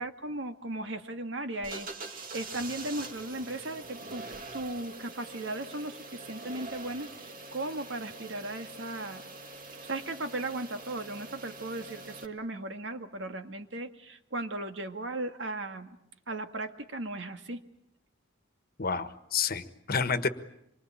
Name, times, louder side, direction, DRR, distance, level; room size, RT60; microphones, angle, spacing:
voice 1, 0.0-4.2 4.5-9.2 9.8-16.0 16.3-17.6, right 2 dB, 65° right, 7 dB, 1.9 m, -37 dB
sound 1, 1.6-12.3, right 3 dB, 45° right, 2.3 m, -44 dB
voice 2, 18.8-20.3, left 5 dB, 50° left, 11 dB, 1.4 m, -29 dB
26.5 x 24.0 x 8.8 m, 0.80 s
head